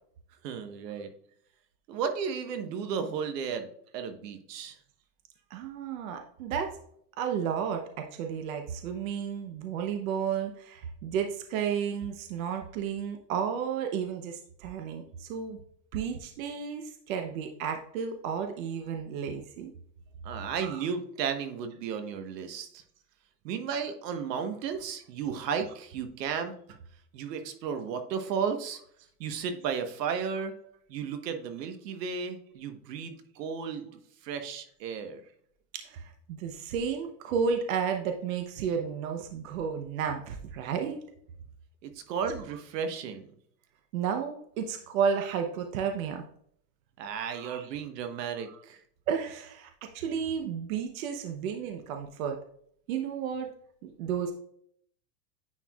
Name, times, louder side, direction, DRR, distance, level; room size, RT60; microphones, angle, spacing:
voice 1, 0.4-1.1 1.9-3.7 3.9-4.8 20.2-22.8 23.4-26.5 27.1-28.8 29.2-30.5 30.9-33.9 34.2-35.2 41.8-43.3 47.0-48.8, right 6 dB, 80° right, 8 dB, 1.2 m, -34 dB
voice 2, 5.5-6.8 7.2-15.6 15.9-19.7 20.6-20.8 35.7-41.0 43.9-46.2 47.3-47.7 49.1-52.4 52.9-53.5 53.8-54.3, right 7 dB, 55° right, 5 dB, 0.9 m, -32 dB
9.7 x 4.6 x 2.3 m, 0.64 s
supercardioid pair, 170°, 48 cm